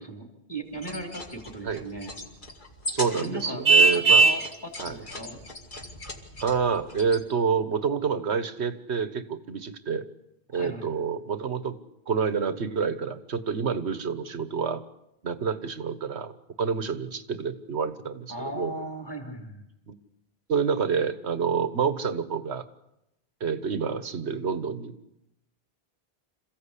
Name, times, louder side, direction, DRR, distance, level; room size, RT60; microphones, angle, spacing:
voice 1, 0.0-2.2 3.1-5.4 10.5-10.9 18.3-19.7, right 1 dB, 20° left, 3 dB, 3.6 m, -37 dB
sound 1, 0.7-7.2, left 1 dB, 50° left, 2.4 m, -40 dB
voice 2, 2.9-4.3 4.8-5.0 6.4-10.0 10.5-11.7 12.1-14.8 15.2-18.7 19.9-20.0 20.5-22.6 23.4-25.0, right 6 dB, 85° right, 12 dB, 1.5 m, -28 dB
Vehicle horn car horn honking, 3.6-4.5, right 3 dB, 55° right, 1.3 m, -17 dB
27.5 x 15.5 x 8.4 m, 0.88 s
omnidirectional pair, 1.1 m